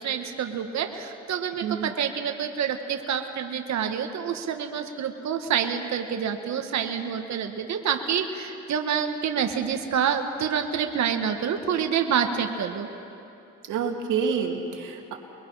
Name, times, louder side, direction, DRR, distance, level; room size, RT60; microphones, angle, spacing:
voice 1, 0.0-12.9, right 7 dB, 65° right, 5 dB, 1.7 m, -27 dB
voice 2, 13.7-15.1, right 6 dB, 85° right, 1 dB, 2.7 m, -28 dB
28.5 x 22.0 x 5.8 m, 2.7 s
cardioid pair, 90°, 30 cm